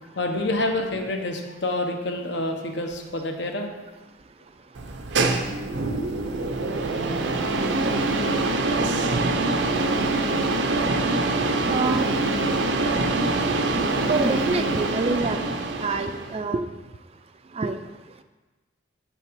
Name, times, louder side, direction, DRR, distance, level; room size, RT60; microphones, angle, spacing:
voice 1, 0.0-3.7 7.5-7.8 8.2-8.3 9.6-10.0, left 2 dB, 65° left, 3 dB, 1.1 m, -28 dB
sound 1, 4.8-16.4, right 2 dB, 70° right, 0.7 m, -24 dB
voice 2, 11.7-12.1 14.1-15.4 15.8-16.6 17.6-17.8, right 3 dB, 30° right, 9 dB, 0.4 m, -26 dB
8.1 x 5.6 x 4.7 m, 1.2 s
head